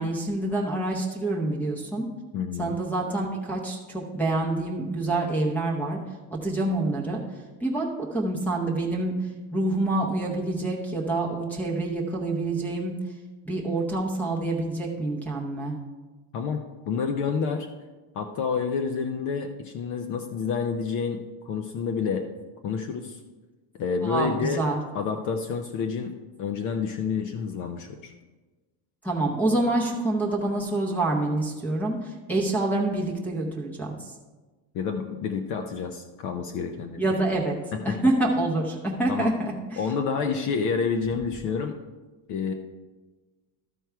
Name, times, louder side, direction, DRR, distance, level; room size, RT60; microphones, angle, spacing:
voice 1, 0.0-2.1 2.6-6.0 6.3-7.2 7.6-12.9 13.4-15.7 24.0-24.8 29.0-34.1 37.0-37.6 37.8-39.8, right 2 dB, 5° left, -5 dB, 0.7 m, -27 dB
voice 2, 2.3-2.8 16.3-17.7 18.1-22.3 22.6-23.2 23.8-24.6 24.9-26.1 26.4-28.1 34.7-37.0 37.7-38.0 39.1-39.3 39.8-41.8 42.3-42.5, left 5 dB, 45° left, 5 dB, 0.6 m, -29 dB
12.5 x 4.6 x 4.6 m, 1.2 s
cardioid pair, 170°, 43 cm